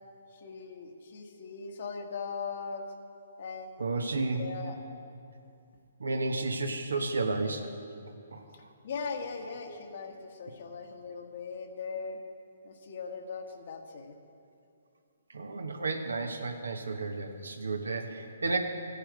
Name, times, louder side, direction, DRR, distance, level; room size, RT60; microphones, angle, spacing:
voice 1, 0.3-2.9 3.4-4.0 4.3-4.8 8.5-12.2 12.6-14.2, left 5 dB, 55° left, 4 dB, 1.4 m, -39 dB
voice 2, 3.8-4.4 6.0-7.7 8.3-8.4 15.3-18.6, right 3 dB, 85° right, 5 dB, 1.3 m, -32 dB
14.5 x 9.9 x 5.1 m, 2.5 s
hypercardioid pair, 145°, 0 cm